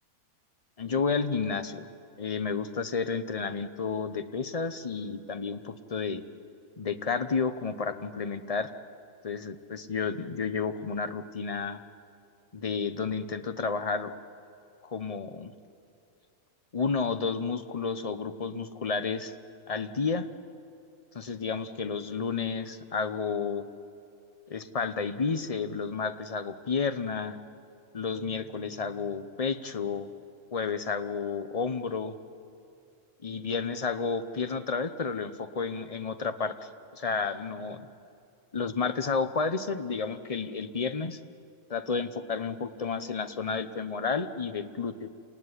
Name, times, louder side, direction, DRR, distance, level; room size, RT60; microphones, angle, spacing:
voice 1, 0.8-1.9 2.2-6.2 6.8-8.7 9.2-11.8 12.5-14.1 14.8-15.5 16.7-19.3 19.7-20.3 21.1-23.7 24.5-27.4 27.9-30.1 30.5-32.2 33.2-37.8 38.5-41.2 41.7-45.1, left 5 dB, 30° left, 10 dB, 0.8 m, -31 dB
29.0 x 19.5 x 9.8 m, 2.6 s
omnidirectional pair, 1.6 m